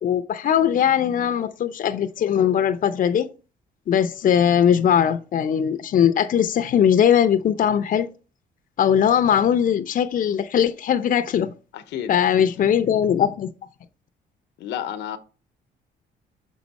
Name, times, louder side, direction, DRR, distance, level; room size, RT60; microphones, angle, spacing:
voice 1, 0.0-3.3 3.9-8.1 8.8-11.5 12.1-13.5, left 9 dB, 50° left, 0.6 m, -20 dB
voice 2, 11.7-12.5 14.6-15.2, left 10 dB, 85° left, 0.8 m, -32 dB
6.3 x 4.1 x 4.1 m
cardioid pair, 95°, 18 cm